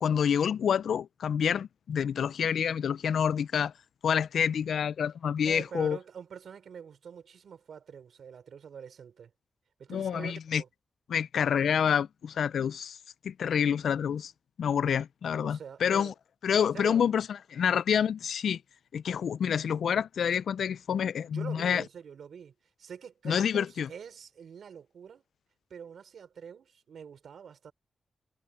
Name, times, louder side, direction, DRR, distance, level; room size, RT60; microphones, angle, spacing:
voice 1, 0.0-3.7 4.0-6.0 9.9-10.6 11.1-13.0 13.2-14.3 14.6-16.1 16.4-18.6 18.9-21.8 23.2-23.9, left 8 dB, 90° left, 0.3 m, -28 dB
voice 2, 5.4-9.3 9.8-10.7 15.4-16.1 16.6-17.0 21.3-25.2 25.7-27.7, right 7 dB, 80° right, 4.2 m, -45 dB
wide cardioid pair, 125°, 0 cm